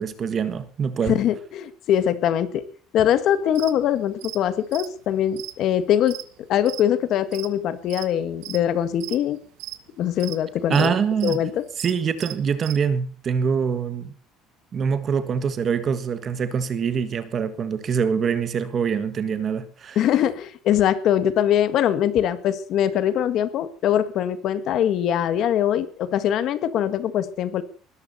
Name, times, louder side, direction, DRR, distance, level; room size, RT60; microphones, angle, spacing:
voice 1, 0.0-1.2 10.7-11.4 11.8-14.1 14.7-20.0, right 6 dB, 25° right, 1.6 m, -24 dB
voice 2, 1.1-2.6 2.9-6.2 6.5-9.4 10.0-11.0 11.2-11.6 20.0-27.6, left 10 dB, 40° left, 1.6 m, -22 dB
sound 1, 3.5-3.7 4.2-4.4 4.7-6.8 7.2-8.1 8.4-8.6 9.0-9.8 10.2-10.4 10.7-11.4 11.7-12.8, right 19 dB, 75° right, 1.4 m, -37 dB
20.0 x 13.5 x 4.2 m
cardioid pair, 175°, 0 cm